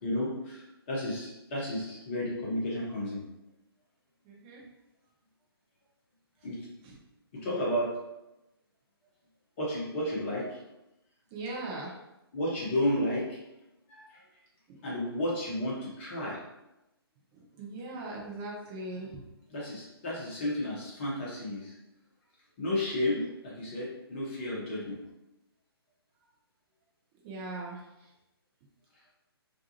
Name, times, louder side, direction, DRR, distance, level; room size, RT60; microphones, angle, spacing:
voice 1, 0.0-3.2 6.4-6.7 7.3-8.0 9.6-10.6 12.3-13.4 13.9-14.4 14.8-16.4 19.5-21.7 22.6-25.0, left 1 dB, 30° left, -6 dB, 0.9 m, -32 dB
voice 2, 4.3-4.6 11.3-11.9 17.3-19.2 23.2-23.3 27.2-27.8, right 2 dB, 20° right, -3 dB, 0.5 m, -39 dB
2.5 x 2.3 x 2.8 m, 0.91 s
figure-of-eight pair, 135°, 13 cm